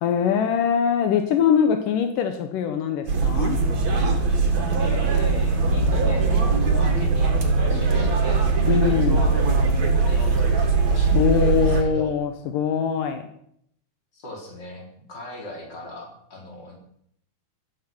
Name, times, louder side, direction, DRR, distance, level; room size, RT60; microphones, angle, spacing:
voice 1, 0.0-3.6 8.7-9.2 11.1-13.3, left 7 dB, 80° left, 7 dB, 2.7 m, -22 dB
sound 1, 3.1-11.8, right 4 dB, 55° right, 3.4 m, -20 dB
voice 2, 4.8-12.2 14.1-16.8, left 1 dB, 30° left, 0 dB, 4.9 m, -40 dB
14.5 x 13.0 x 6.2 m, 0.68 s
omnidirectional pair, 3.8 m